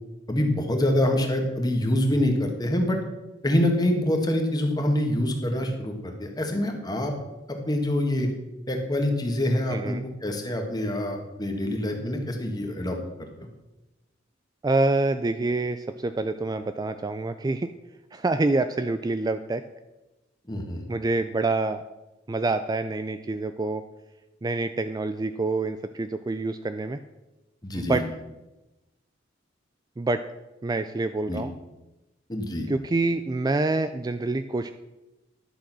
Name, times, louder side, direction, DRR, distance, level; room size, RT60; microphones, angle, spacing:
voice 1, 0.3-3.0 3.4-7.1 7.5-8.3 8.7-13.0 20.5-20.8 27.6-28.0 31.3-31.4 32.3-32.7, left 1 dB, 20° left, 3 dB, 1.6 m, -25 dB
voice 2, 9.7-10.0 14.6-17.7 18.1-19.6 20.9-21.8 22.3-23.8 24.4-27.0 27.7-28.0 30.0-30.2 30.6-31.5 32.7-34.7, right 2 dB, 20° right, 10 dB, 0.3 m, -26 dB
11.5 x 6.3 x 6.1 m, 1.0 s
head